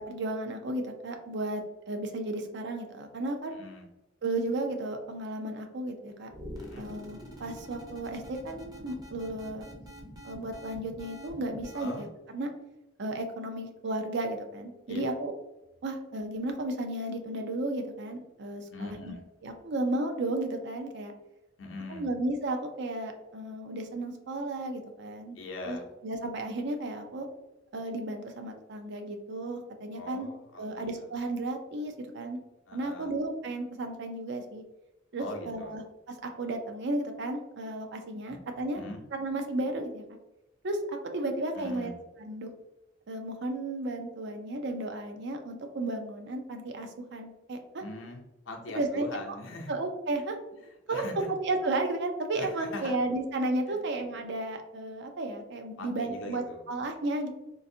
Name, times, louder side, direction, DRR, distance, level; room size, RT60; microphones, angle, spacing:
voice 1, 0.0-1.6 1.9-3.6 4.2-6.3 6.8-9.6 10.2-12.1 12.3-12.5 13.0-15.3 15.8-19.1 19.4-21.1 21.9-25.4 25.7-25.8 26.0-27.3 27.7-30.3 30.6-32.4 32.7-34.6 35.1-35.8 36.1-38.8 39.1-40.2 40.6-41.9 42.2-42.5 43.1-47.8 48.7-49.1 49.7-50.4 50.9-51.0 51.3-57.3, right 2 dB, 60° right, 5 dB, 0.5 m, -33 dB
voice 2, 3.5-3.9 6.6-6.9 11.7-12.1 14.9-15.0 18.7-19.2 21.6-22.1 25.3-25.9 29.9-31.1 32.7-33.1 35.2-35.8 38.3-38.4 38.7-39.0 41.5-42.0 47.8-49.7 50.6-51.3 52.4-52.9 53.7-53.8 55.8-56.6, left 2 dB, 75° left, 1 dB, 0.6 m, -41 dB
sound 1, 6.3-12.1, equal, 20° right, 0.6 m, -46 dB
3.7 x 2.5 x 2.6 m, 0.97 s
head